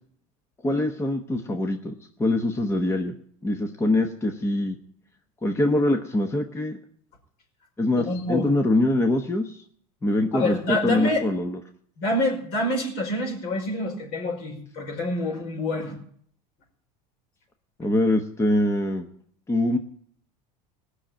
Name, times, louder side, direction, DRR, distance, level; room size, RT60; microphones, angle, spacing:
voice 1, 0.6-3.1 3.4-4.8 5.4-6.8 7.8-9.6 10.0-11.6 17.8-19.1 19.5-19.8, left 1 dB, 15° left, 6 dB, 1.1 m, -24 dB
voice 2, 7.9-8.5 10.3-11.2 12.0-16.0, left 1 dB, 60° left, 2 dB, 5.0 m, -27 dB
18.0 x 6.5 x 8.9 m, 0.62 s
supercardioid pair, 115°, 19 cm